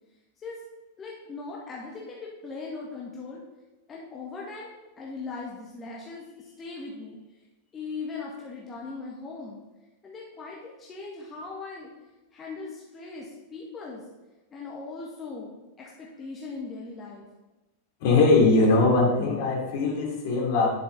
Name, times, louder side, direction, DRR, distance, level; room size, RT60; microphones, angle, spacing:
voice 1, 1.0-3.4 3.9-7.2 7.7-9.6 10.0-11.9 12.3-14.0 14.5-17.3, left 4 dB, 20° left, -3 dB, 1.8 m, -39 dB
voice 2, 18.0-20.7, left 3 dB, 50° left, -2 dB, 3.1 m, -21 dB
11.0 x 8.0 x 4.0 m, 1.1 s
figure-of-eight pair, 90°, 0 cm